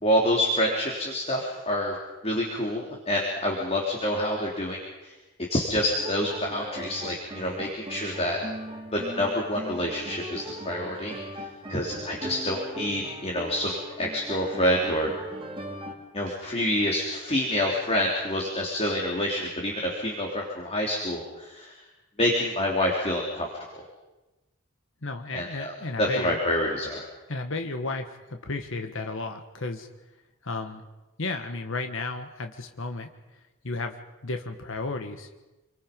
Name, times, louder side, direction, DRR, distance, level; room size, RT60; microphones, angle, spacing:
voice 1, 0.0-2.0 2.2-5.1 5.5-8.4 8.9-15.1 16.1-21.8 22.2-23.5 23.7-23.9 25.3-27.0, left 1 dB, 30° left, -1 dB, 3.4 m, -27 dB
sound 1, 6.0-15.9, right 1 dB, 25° right, 3.6 m, -39 dB
voice 2, 25.0-26.4 27.3-29.9 30.4-30.8 31.2-33.1 33.6-35.4, left 3 dB, 65° left, 5 dB, 1.6 m, -33 dB
29.5 x 24.0 x 5.4 m, 1.1 s
head